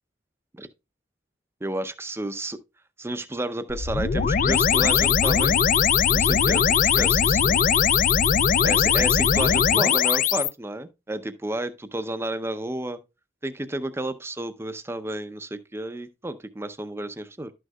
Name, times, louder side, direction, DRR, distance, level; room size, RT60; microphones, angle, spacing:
voice 1, 1.6-2.6 3.0-5.6 6.1-7.7 8.6-13.0 13.4-17.5, right 1 dB, 15° right, 0.6 m, -31 dB
sound 1, 3.7-10.5, left 7 dB, 50° left, 0.4 m, -20 dB
12.0 x 6.3 x 2.3 m
head